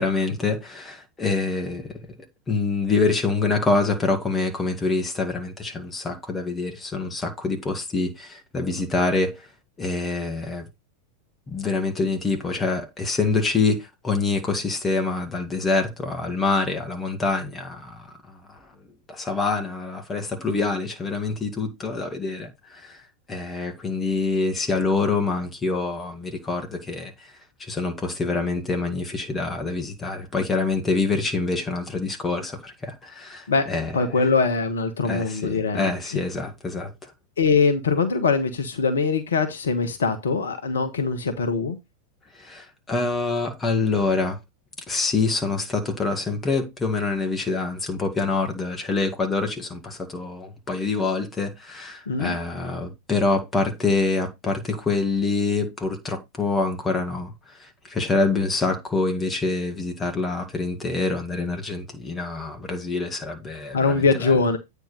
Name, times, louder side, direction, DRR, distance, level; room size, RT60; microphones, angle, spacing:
voice 1, 0.0-2.0 2.5-9.4 9.8-10.7 11.5-18.4 19.1-23.0 23.3-27.1 27.6-34.2 35.0-36.9 42.4-44.4 44.9-57.3 57.6-64.3, left 3 dB, 15° left, 1.9 m, -26 dB
voice 2, 33.5-35.9 37.4-41.8 52.1-52.3 63.7-64.6, left 4 dB, 65° left, 1.2 m, -22 dB
8.8 x 3.5 x 5.6 m
figure-of-eight pair, 90°, 0 cm